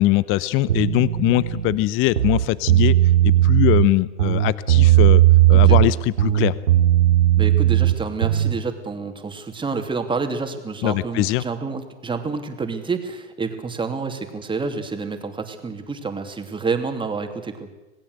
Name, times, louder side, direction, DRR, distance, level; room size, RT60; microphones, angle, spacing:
voice 1, 0.0-2.9 3.2-5.2 5.5-6.6 10.8-11.4, left 16 dB, 35° left, 19 dB, 0.8 m, -21 dB
sound 1, 0.7-1.7 2.1-3.9 4.2-5.9 6.2-8.6, right 14 dB, 90° right, 2.6 m, -16 dB
voice 2, 7.4-17.7, right 4 dB, 15° right, 6 dB, 2.8 m, -28 dB
27.0 x 18.0 x 8.0 m, 1.0 s
hypercardioid pair, 120°, 35 cm